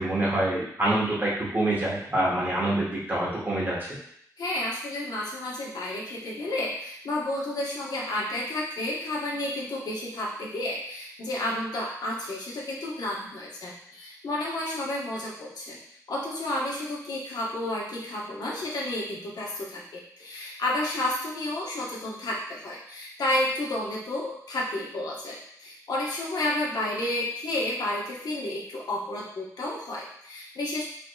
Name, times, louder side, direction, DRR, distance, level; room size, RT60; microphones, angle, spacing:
voice 1, 0.0-3.7, right 1 dB, 30° right, -6 dB, 1.4 m, -26 dB
voice 2, 4.4-15.8 16.1-30.8, left 1 dB, 85° left, -4 dB, 1.1 m, -31 dB
4.7 x 3.4 x 2.3 m, 0.68 s
wide cardioid pair, 140°, 7 cm